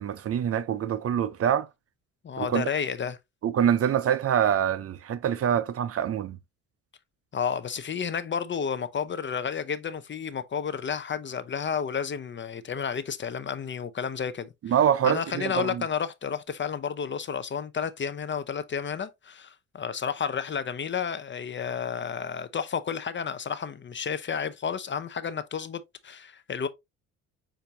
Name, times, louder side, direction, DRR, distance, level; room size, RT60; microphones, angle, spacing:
voice 1, 0.0-1.7 2.4-2.7 3.4-6.4 14.6-15.8, right 9 dB, 40° right, 0.6 m, -25 dB
voice 2, 2.2-3.2 7.3-14.5 15.0-26.7, left 7 dB, 35° left, 0.6 m, -31 dB
6.7 x 2.7 x 2.7 m
supercardioid pair, 65°, 35 cm